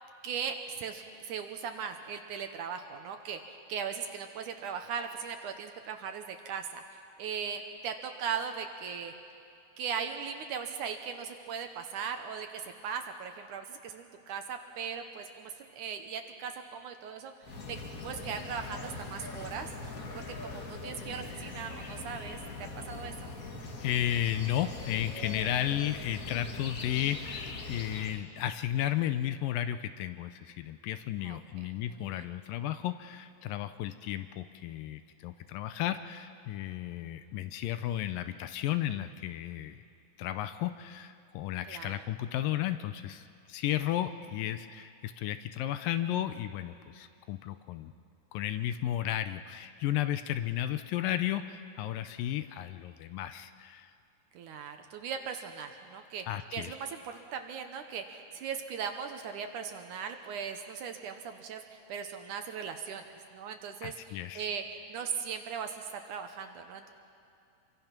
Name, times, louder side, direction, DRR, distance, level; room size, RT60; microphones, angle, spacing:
voice 1, 0.2-6.8 7.2-9.1 9.8-17.3 17.7-19.7 20.1-22.4 22.7-23.3 31.2-32.2 41.7-42.0 54.3-56.3 56.5-63.1 63.3-66.9, right 7 dB, 70° right, 6 dB, 2.2 m, -39 dB
sound 1, 17.4-28.2, left 3 dB, 55° left, 0.9 m, -42 dB
voice 2, 23.6-39.8 40.2-47.9 48.3-53.9 56.3-56.7 63.8-64.5, left 12 dB, 80° left, 10 dB, 2.2 m, -33 dB
27.0 x 23.5 x 5.9 m, 2.5 s
omnidirectional pair, 4.2 m